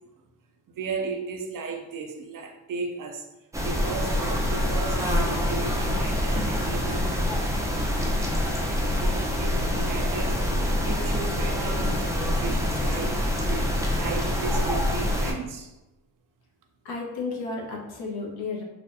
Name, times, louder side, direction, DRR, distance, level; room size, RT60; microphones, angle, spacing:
voice 1, 0.8-3.3 3.6-7.2 8.7-15.7, right 4 dB, 45° right, 4 dB, 0.6 m, -35 dB
sound 1, 3.5-15.3, left 1 dB, 5° right, 0.6 m, -25 dB
voice 2, 16.8-18.6, left 4 dB, 60° left, -1 dB, 1.1 m, -32 dB
4.2 x 2.4 x 2.6 m, 1.0 s
supercardioid pair, 75°, 44 cm